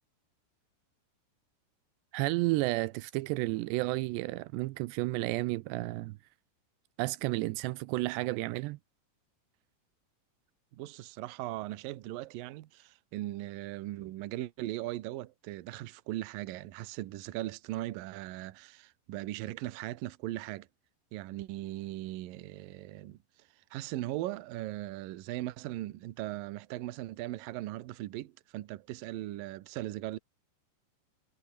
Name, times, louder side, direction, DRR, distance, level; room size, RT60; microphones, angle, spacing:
voice 1, 2.1-6.2 7.0-8.8, right 20 dB, 85° right, 2.8 m, -32 dB
voice 2, 10.7-20.7 21.1-23.2 23.7-30.2, right 16 dB, 70° right, 2.4 m, -39 dB
omnidirectional pair, 4.9 m